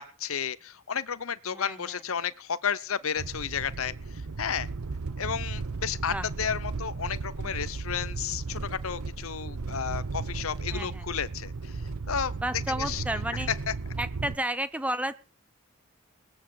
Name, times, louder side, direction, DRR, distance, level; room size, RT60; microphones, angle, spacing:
voice 1, 0.0-3.9 4.4-4.7 5.2-12.4 12.8-13.0 13.7-13.8, left 7 dB, 65° left, 0.8 m, -32 dB
voice 2, 1.5-2.0 6.1-6.3 10.7-11.1 12.4-13.5 14.0-15.1, right 1 dB, 5° right, 0.9 m, -32 dB
sound 1, 3.2-14.4, right 3 dB, 85° right, 0.8 m, -35 dB
19.0 x 7.7 x 7.8 m
head